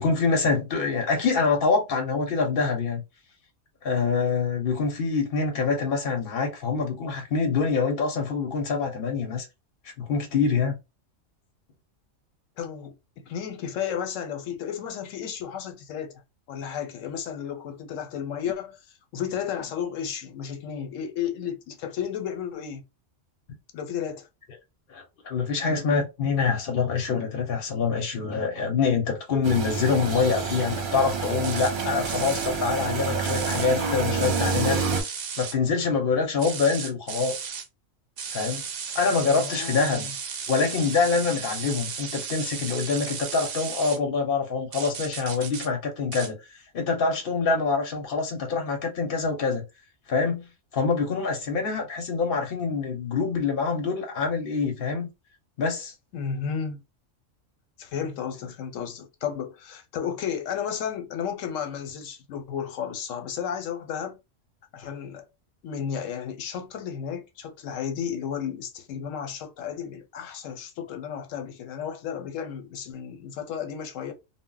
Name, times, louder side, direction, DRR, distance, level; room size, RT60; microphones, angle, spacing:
voice 1, 0.0-3.0 3.8-9.5 10.0-10.8 24.9-34.9 35.4-37.3 38.3-38.6 38.9-40.1 40.5-46.4 46.7-49.6 50.1-50.5 50.7-55.1 55.6-55.9, left 4 dB, 50° left, 0.7 m, -25 dB
voice 2, 12.6-12.9 13.2-16.2 16.5-18.8 19.1-22.8 23.7-24.3 39.1-40.1 56.1-56.8 57.8-64.2 64.7-65.3 65.6-74.1, left 8 dB, 85° left, 1.0 m, -33 dB
sound 1, 29.4-35.0, right 5 dB, 50° right, 0.7 m, -28 dB
sound 2, 31.4-31.7 32.0-32.5 33.3-33.7 34.2-35.6 36.4-37.7 38.2-44.0 44.7-45.7 46.1-46.3, right 6 dB, 75° right, 0.4 m, -35 dB
2.1 x 2.0 x 3.7 m
omnidirectional pair, 1.3 m